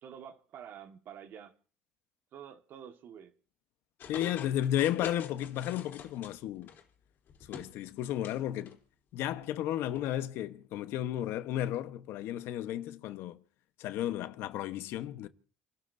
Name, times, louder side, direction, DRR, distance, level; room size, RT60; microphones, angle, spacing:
voice 1, 0.0-1.5 2.3-3.3, right 8 dB, 55° right, 1.7 m, -48 dB
sound 1, 4.0-6.8 7.3-8.4 8.7-8.8 9.9-10.0, left 8 dB, 55° left, 3.5 m, -45 dB
voice 2, 4.1-6.7 7.5-8.8 9.1-13.4 13.8-15.3, left 12 dB, 70° left, 1.1 m, -33 dB
29.5 x 13.0 x 2.7 m
supercardioid pair, 100°, 4 cm